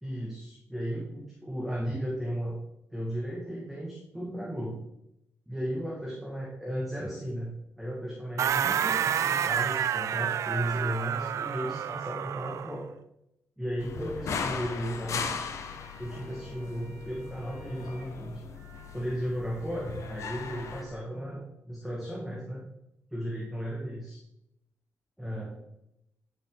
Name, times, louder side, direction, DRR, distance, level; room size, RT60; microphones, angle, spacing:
voice 1, 0.0-2.6 2.9-4.8 5.5-12.9 13.6-15.3 16.0-18.4 18.9-22.6 23.1-24.2 25.2-25.6, equal, 5° right, -4 dB, 1.9 m, -35 dB
sound 1, 8.4-12.8, right 9 dB, 65° right, 0.4 m, -29 dB
sound 2, 13.8-20.8, left 6 dB, 65° left, 1.0 m, -38 dB
sound 3, 15.4-21.0, right 2 dB, 35° right, 2.9 m, -54 dB
10.5 x 6.5 x 3.9 m, 0.84 s
cardioid pair, 125°, 6 cm